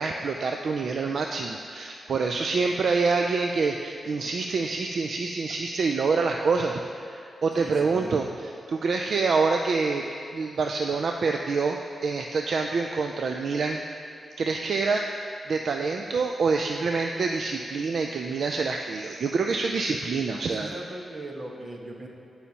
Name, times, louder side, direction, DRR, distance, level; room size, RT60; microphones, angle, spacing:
voice 1, 0.0-10.0 10.3-13.8 14.4-15.0 15.5-20.7, right 4 dB, 65° right, 3 dB, 0.4 m, -26 dB
voice 2, 7.5-8.2 20.6-22.1, right 1 dB, 40° right, 0 dB, 1.2 m, -39 dB
17.0 x 5.6 x 2.9 m, 2.5 s
wide cardioid pair, 110°, 0 cm